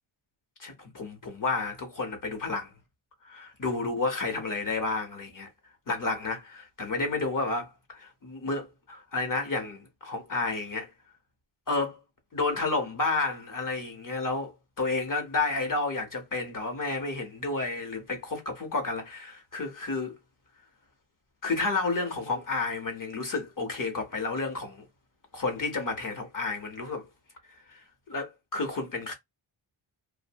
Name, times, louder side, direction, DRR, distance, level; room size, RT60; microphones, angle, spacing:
voice 1, 0.6-2.7 3.3-5.5 5.9-10.9 11.7-12.0 12.3-20.2 21.4-24.9 25.3-27.1 27.7-29.1, left 3 dB, 40° left, 0.8 m, -31 dB
2.6 x 2.0 x 2.7 m
wide cardioid pair, 145°, 50 cm